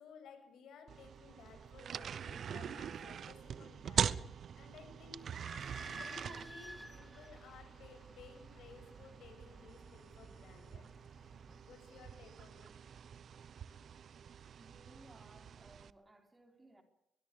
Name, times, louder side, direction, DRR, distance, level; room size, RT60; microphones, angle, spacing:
voice 1, 0.0-5.3 5.8-11.2 11.6-12.7, left 5 dB, 75° left, 6 dB, 7.4 m, -57 dB
sound 1, 0.9-15.9, right 8 dB, 55° right, 0.9 m, -43 dB
Idling / Squeak, 5.2-11.6, equal, ahead, 1.8 m, -54 dB
voice 2, 14.6-16.8, right 1 dB, 20° right, 5 dB, 3.9 m, -61 dB
22.0 x 20.5 x 6.7 m, 0.85 s
cardioid pair, 90°, 0 cm